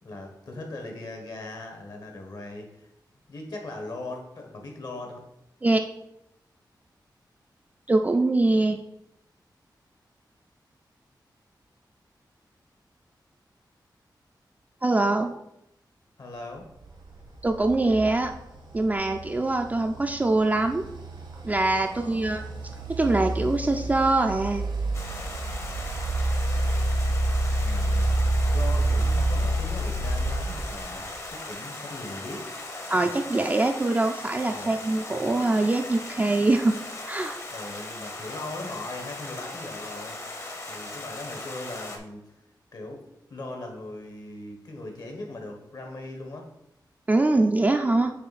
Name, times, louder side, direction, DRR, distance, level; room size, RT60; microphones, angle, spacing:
voice 1, 0.0-2.9 3.3-5.2 16.2-16.7 21.8-22.5 27.6-31.0 31.3-32.5 34.5-34.8 37.5-40.2 40.7-42.3 42.7-43.0 43.3-46.5 47.9-48.0, left 2 dB, 60° left, 3 dB, 1.2 m, -39 dB
voice 2, 7.9-8.8 14.8-15.3 17.4-18.3 18.7-20.8 21.4-22.4 23.0-24.6 32.9-36.8 37.1-37.4 47.1-48.1, right 2 dB, 20° right, 4 dB, 0.3 m, -23 dB
sound 1, 16.8-31.3, right 1 dB, 85° right, 1.3 m, -28 dB
Stream, 24.9-42.0, left 2 dB, 40° left, 0.8 m, -38 dB
7.7 x 3.1 x 4.1 m, 0.83 s
wide cardioid pair, 145°, 8 cm